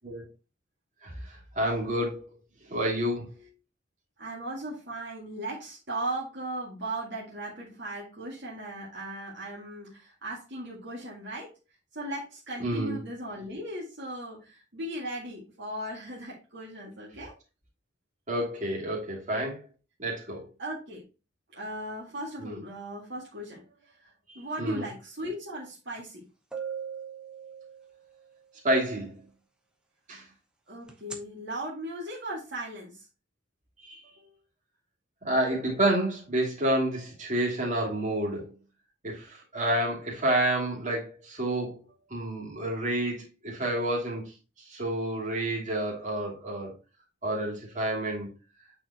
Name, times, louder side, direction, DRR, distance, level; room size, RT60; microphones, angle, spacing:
voice 1, 1.0-2.2 2.7-3.3 12.6-13.0 18.3-19.6 20.0-20.5 22.4-22.6 24.3-24.9 28.6-29.1 30.1-30.2 33.8-34.0 35.2-38.5 39.0-41.8 42.1-44.3 44.7-46.7 47.2-48.3, right 1 dB, 40° right, -3 dB, 2.6 m, -29 dB
voice 2, 4.2-11.5 11.9-17.3 20.6-21.0 21.5-26.2 30.7-33.1 34.0-34.3, right 1 dB, 60° right, -5 dB, 1.9 m, -37 dB
sound 1, 26.0-26.1 26.5-28.2 30.9-31.2, right 7 dB, 5° right, 1.0 m, -38 dB
8.5 x 4.3 x 2.9 m, 0.31 s
head